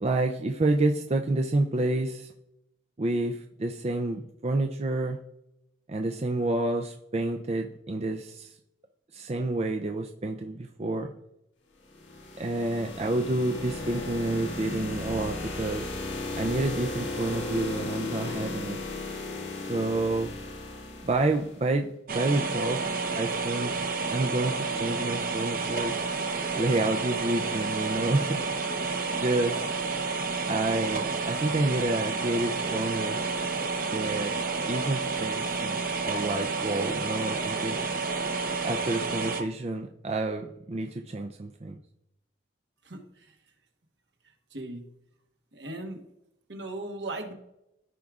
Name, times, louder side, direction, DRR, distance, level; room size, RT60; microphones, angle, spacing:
voice 1, 0.0-2.3 3.0-5.2 5.9-8.5 9.1-11.1 12.4-15.9 16.4-18.8 19.6-20.3 21.0-22.8 23.1-23.8 24.1-25.9 26.6-28.4 29.2-29.6 30.5-33.2 33.9-34.3 34.7-37.8 38.6-41.8, right 2 dB, 35° right, 3 dB, 0.4 m, -29 dB
sound 1, 11.9-21.7, left 2 dB, 75° left, 1.5 m, -36 dB
sound 2, 22.1-39.4, right 4 dB, 50° right, 0.9 m, -30 dB
voice 2, 44.5-44.8 45.5-46.0 46.5-47.3, right 2 dB, 70° right, 4 dB, 1.2 m, -37 dB
14.5 x 4.9 x 2.4 m, 0.85 s
head